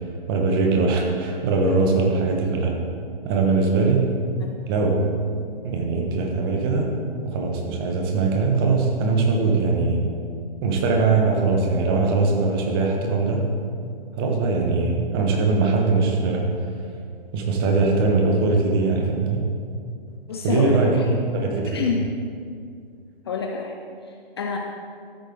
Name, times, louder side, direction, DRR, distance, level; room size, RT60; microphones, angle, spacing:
voice 1, 0.0-2.7 3.2-4.2 4.7-5.1 5.6-7.0 7.2-10.0 10.6-13.5 14.2-16.5 17.3-19.5 20.4-20.9 21.3-21.8, right 3 dB, 25° right, 1 dB, 1.2 m, -21 dB
voice 2, 20.3-21.0 21.7-22.1 23.3-23.8 24.4-24.6, left 5 dB, 25° left, 1 dB, 0.6 m, -27 dB
13.5 x 8.2 x 3.8 m, 2.3 s
figure-of-eight pair, 130°, 30 cm